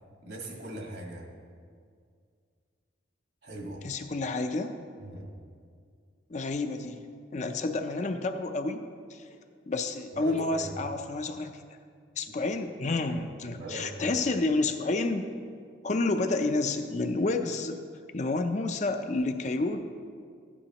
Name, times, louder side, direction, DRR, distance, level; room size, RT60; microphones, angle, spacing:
voice 1, 0.2-1.3 3.4-3.8 5.0-5.3 10.1-10.7 12.2-12.3 13.5-14.2, right 1 dB, 60° right, 0 dB, 1.6 m, -40 dB
voice 2, 3.8-4.7 6.3-7.0 7.3-8.8 9.1-9.4 9.7-11.6 12.2-15.3 15.8-17.8 18.1-19.8, left 2 dB, 40° left, 7 dB, 0.4 m, -29 dB
13.0 x 9.7 x 2.9 m, 2.2 s
head